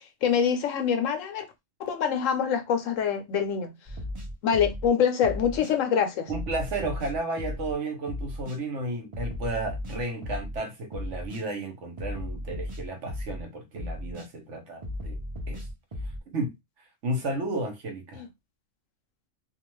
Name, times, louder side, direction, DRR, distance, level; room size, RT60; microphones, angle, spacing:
voice 1, 0.2-1.4 1.8-3.7 4.4-6.3 18.2-18.3, left 7 dB, 85° left, 1.1 m, -25 dB
sound 1, 3.9-4.9 5.2-5.7 6.3-7.7 8.1-8.6 9.1-10.6 10.9-11.4 12.0-13.4 13.8-14.3 14.8-16.2, left 1 dB, 35° right, 0.6 m, -35 dB
voice 2, 6.3-15.2 15.5-15.7 16.3-16.5 17.0-18.2, right 2 dB, 70° right, 1.1 m, -33 dB
2.6 x 2.3 x 3.0 m
omnidirectional pair, 1.3 m